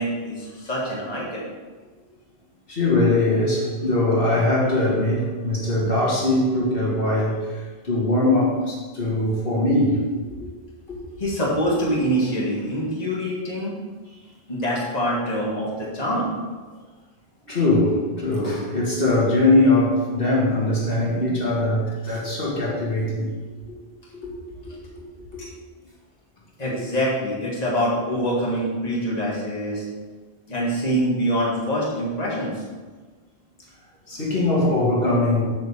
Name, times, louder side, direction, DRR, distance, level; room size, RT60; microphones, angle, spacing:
voice 1, 0.0-1.5 11.2-13.7 14.5-16.3 22.0-22.2 25.4-25.5 26.6-29.8 30.5-32.6, equal, 40° left, -5 dB, 2.2 m, -25 dB
voice 2, 2.7-10.5 10.9-11.0 17.4-23.3 23.7-23.8 24.1-24.3 24.7-25.0 25.3-25.4 34.1-35.4, left 2 dB, 65° left, -5 dB, 2.4 m, -21 dB
8.9 x 5.2 x 7.2 m, 1.3 s
omnidirectional pair, 1.0 m